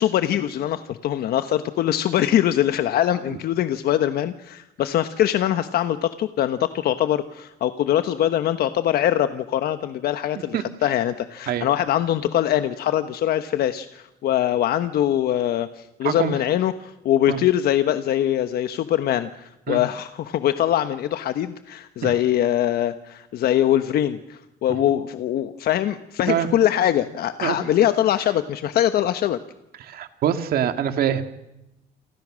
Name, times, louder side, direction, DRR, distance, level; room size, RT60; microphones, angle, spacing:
voice 1, 0.0-29.4, left 11 dB, 65° left, 10 dB, 1.2 m, -22 dB
voice 2, 29.8-31.2, right 9 dB, 65° right, 8 dB, 2.2 m, -24 dB
29.0 x 24.0 x 6.4 m, 0.93 s
cardioid pair, 110°, 17 cm